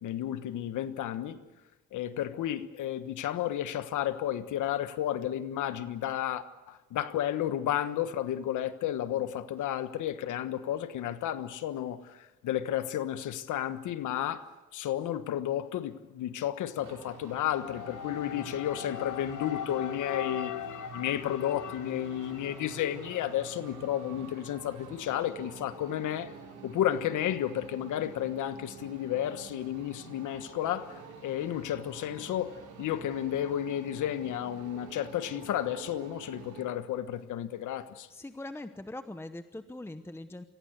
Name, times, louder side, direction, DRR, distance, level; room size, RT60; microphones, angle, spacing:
voice 1, 0.0-1.4 1.9-14.5 14.7-26.3 26.6-38.1, left 11 dB, 80° left, 1.4 m, -32 dB
sound 1, 16.8-36.6, right 6 dB, 80° right, 5.7 m, -48 dB
voice 2, 38.1-40.4, left 1 dB, 10° left, 1.0 m, -42 dB
24.5 x 16.0 x 8.1 m
cardioid pair, 90°, 30 cm